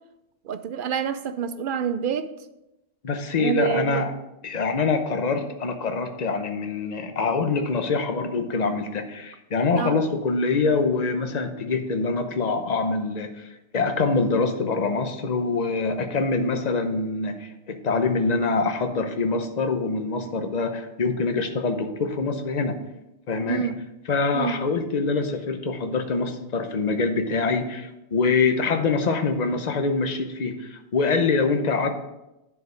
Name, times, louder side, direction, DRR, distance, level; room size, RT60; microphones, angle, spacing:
voice 1, 0.5-2.3 3.4-4.0 9.8-10.0 23.5-23.7 24.3-24.6, right 8 dB, 60° right, 11 dB, 0.6 m, -27 dB
voice 2, 3.0-4.1 4.4-13.5 13.7-22.8 23.3-23.8 24.1-31.9, left 4 dB, 40° left, 7 dB, 0.9 m, -25 dB
9.9 x 4.8 x 5.1 m, 0.93 s
omnidirectional pair, 1.2 m